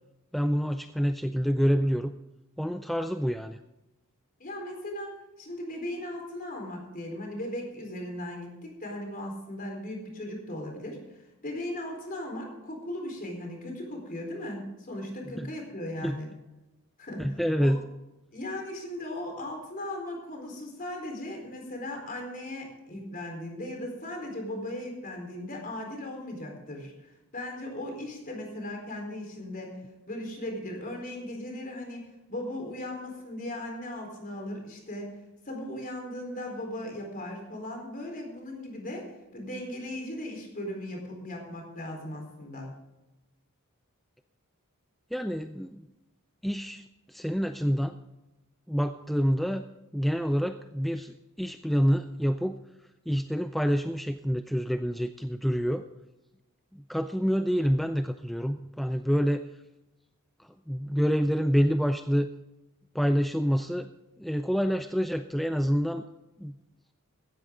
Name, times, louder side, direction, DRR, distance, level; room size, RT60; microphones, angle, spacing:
voice 1, 0.3-2.1 2.6-3.6 15.4-15.5 16.0-16.2 17.2-17.8 45.1-45.9 46.4-48.0 48.7-49.6 49.9-52.6 53.1-55.8 56.7-59.5 60.4-62.3 62.9-63.9 64.2-66.0 66.4-66.5, equal, ahead, 8 dB, 0.4 m, -27 dB
voice 2, 4.4-5.1 5.4-16.3 17.0-17.7 18.3-29.8 30.1-35.2 35.4-42.8, left 1 dB, 40° left, 2 dB, 4.2 m, -37 dB
16.0 x 13.5 x 3.8 m, 1.0 s
head